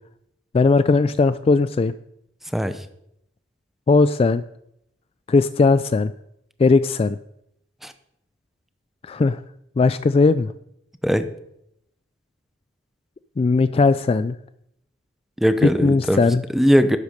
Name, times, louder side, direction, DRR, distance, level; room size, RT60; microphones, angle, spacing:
voice 1, 0.5-1.9 3.9-4.4 5.3-6.1 6.6-7.2 9.0-9.4 9.8-10.5 13.4-14.4 15.8-16.4, left 3 dB, 30° left, 14 dB, 0.3 m, -18 dB
voice 2, 15.4-16.2 16.5-17.0, equal, ahead, 10 dB, 0.6 m, -19 dB
11.5 x 8.2 x 5.1 m, 0.78 s
head